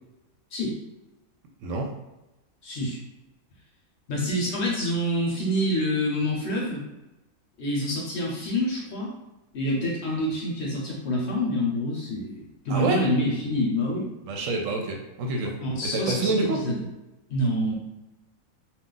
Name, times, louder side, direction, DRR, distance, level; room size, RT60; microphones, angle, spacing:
voice 1, 1.6-1.9 12.7-13.0 14.3-15.6 15.8-16.6, right 2 dB, 70° right, 2 dB, 0.9 m, -27 dB
voice 2, 2.6-3.0 4.1-6.8 7.6-9.1 9.5-14.1 15.6-16.8 17.3-17.7, equal, 60° left, -3 dB, 0.9 m, -27 dB
2.4 x 2.4 x 3.7 m, 0.98 s
omnidirectional pair, 1.5 m